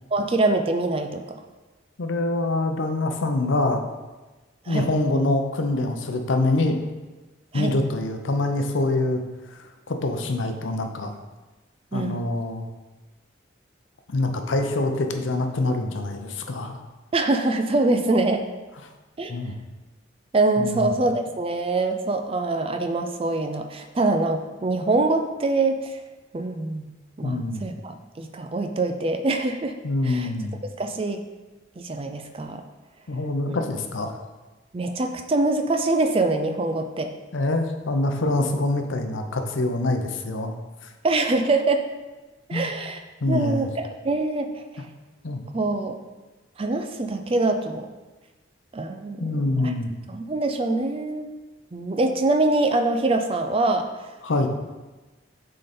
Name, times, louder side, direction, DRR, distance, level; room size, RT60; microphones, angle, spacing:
voice 1, 0.1-1.2 4.7-4.9 7.5-7.7 11.9-12.2 17.1-18.4 19.2-19.4 20.3-26.0 26.3-26.9 27.2-29.7 30.0-30.3 30.8-31.2 31.8-32.6 33.5-33.6 34.7-37.1 41.0-41.8 42.5-43.0 43.3-44.8 45.5-46.0 46.6-47.9 48.7-49.2 49.6-49.7 50.1-51.3 51.7-53.9, right 2 dB, 30° right, 6 dB, 0.4 m, -24 dB
voice 2, 2.0-3.8 4.7-6.8 7.5-9.2 9.5-11.2 11.9-12.7 14.1-16.8 19.3-19.5 20.6-20.9 27.2-27.6 29.8-30.6 33.1-34.1 37.3-40.6 42.5-42.7 43.2-43.7 45.2-45.4 49.2-49.9 54.2-54.5, left 2 dB, 80° left, 6 dB, 0.7 m, -25 dB
6.4 x 3.8 x 4.3 m, 1.2 s
head